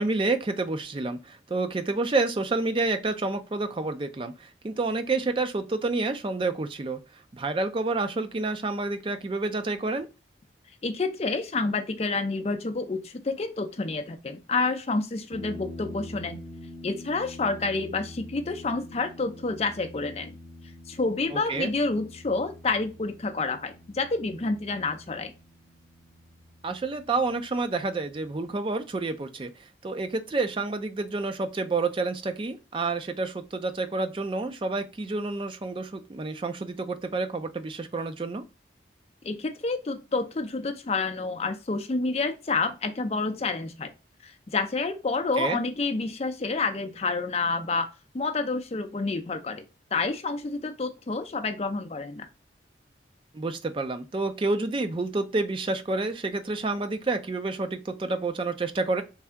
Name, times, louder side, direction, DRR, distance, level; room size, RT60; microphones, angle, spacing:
voice 1, 0.0-7.0 7.3-10.1 21.3-21.7 26.6-29.5 29.8-38.4 45.4-45.6 53.3-59.0, right 3 dB, 30° right, 0.4 m, -29 dB
voice 2, 10.8-16.4 16.8-20.3 20.9-25.3 39.2-43.9 44.2-49.6 49.9-52.3, left 3 dB, 35° left, 0.5 m, -29 dB
sound 1, 15.3-28.4, left 1 dB, 50° right, 1.2 m, -46 dB
3.4 x 2.7 x 3.4 m
head